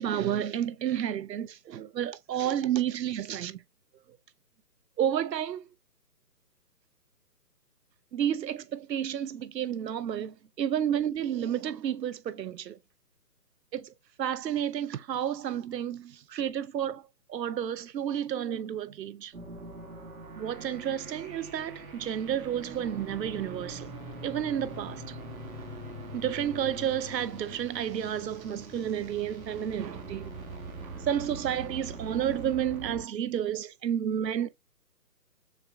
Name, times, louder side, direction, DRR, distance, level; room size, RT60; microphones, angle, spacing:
voice 1, 0.0-3.6 5.0-5.6 8.1-12.8 13.7-13.9 14.2-17.0 17.3-19.3 20.4-23.9 24.2-25.0 26.1-30.3 31.1-34.5, right 10 dB, 90° right, 0.7 m, -31 dB
sound 1, 19.3-33.0, right 2 dB, 60° right, 1.3 m, -43 dB
6.7 x 2.5 x 2.2 m
hypercardioid pair, 175°, 49 cm